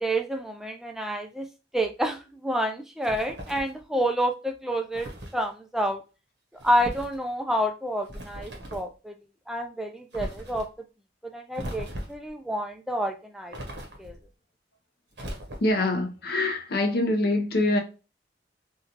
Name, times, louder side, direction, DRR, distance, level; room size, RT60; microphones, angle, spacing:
voice 1, 0.0-1.5 1.7-6.0 6.6-9.1 9.5-10.7 11.2-13.6 14.0-14.2, equal, ahead, 0.4 m, -29 dB
sound 1, 3.0-3.8 4.9-5.4 6.6-7.2 8.0-8.9 10.1-10.7 11.5-12.3 13.5-14.2 15.1-15.8, equal, 80° right, 1.1 m, -38 dB
voice 2, 15.6-17.8, left 2 dB, 60° left, 0.6 m, -24 dB
3.6 x 2.3 x 2.8 m
head